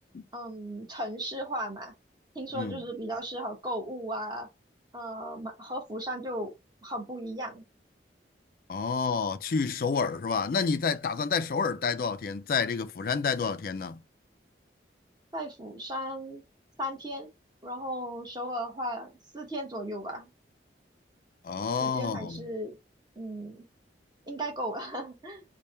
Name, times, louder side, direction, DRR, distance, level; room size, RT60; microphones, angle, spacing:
voice 1, 0.3-1.9 2.3-4.5 4.9-6.5 6.8-7.6 15.3-16.4 16.8-17.3 17.6-20.3 21.8-22.8 23.2-23.6 24.3-25.4, equal, 20° right, 1.0 m, -36 dB
voice 2, 8.7-14.0 21.4-22.4, left 5 dB, 50° left, 0.4 m, -29 dB
3.3 x 2.2 x 4.2 m
head